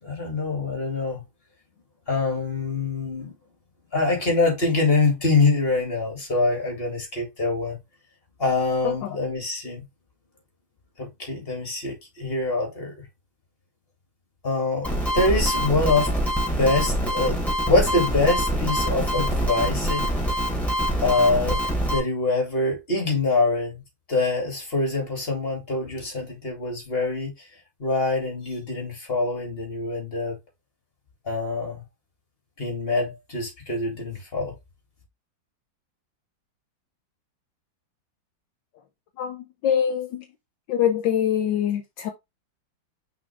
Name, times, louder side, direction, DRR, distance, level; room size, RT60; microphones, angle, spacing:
voice 1, 0.0-1.2 2.1-3.4 3.9-7.8 8.4-9.9 11.0-13.1 14.4-16.1 16.4-20.1 21.0-21.6 21.9-23.8 24.1-27.5 27.8-30.4 31.2-31.8 32.6-34.6, left 3 dB, 30° left, 2.8 m, -25 dB
voice 2, 8.8-9.2 39.2-40.3 40.7-42.1, left 9 dB, 75° left, 1.5 m, -24 dB
sound 1, 14.8-22.0, equal, ahead, 2.9 m, -25 dB
5.9 x 4.6 x 3.4 m
omnidirectional pair, 2.0 m